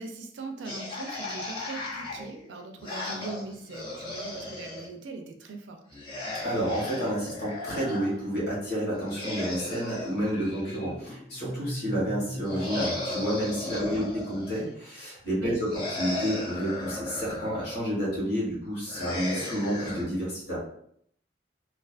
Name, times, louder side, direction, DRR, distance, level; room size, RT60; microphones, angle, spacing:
voice 1, 0.0-5.8 13.8-14.1 15.4-15.6, right 3 dB, 85° right, 5 dB, 0.4 m, -40 dB
sound 1, 0.6-4.9 5.9-8.1 8.9-11.3 12.5-14.7 15.7-17.8 18.9-20.0, left 2 dB, 30° left, 0.6 m, -36 dB
voice 2, 6.4-20.6, equal, 65° left, -6 dB, 1.2 m, -30 dB
sound 2, 11.3-14.1, equal, 15° right, 0.3 m, -39 dB
2.3 x 2.3 x 2.4 m, 0.69 s
head